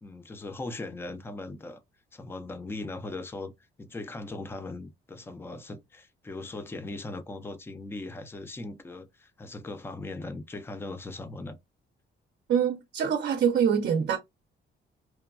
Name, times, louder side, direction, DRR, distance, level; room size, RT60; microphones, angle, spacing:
voice 1, 0.0-1.8 2.1-3.5 3.8-11.6, left 2 dB, 10° left, 0.4 m, -39 dB
voice 2, 12.5-14.2, right 8 dB, 60° right, 0.5 m, -24 dB
3.0 x 2.2 x 2.3 m
cardioid pair, 90°, 20 cm